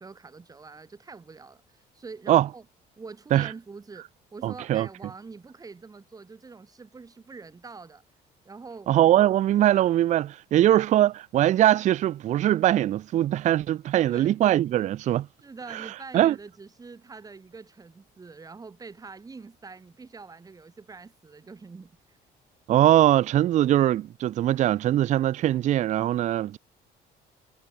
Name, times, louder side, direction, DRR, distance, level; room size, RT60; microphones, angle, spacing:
voice 1, 0.0-2.6 3.0-8.0 8.4-8.9 14.1-14.4 15.4-22.2, right 4 dB, 20° right, 1.6 m, -45 dB
voice 2, 4.4-4.9 8.9-15.3 16.1-16.4 22.7-26.6, right 13 dB, 45° right, 0.4 m, -21 dB
cardioid pair, 110°, 17 cm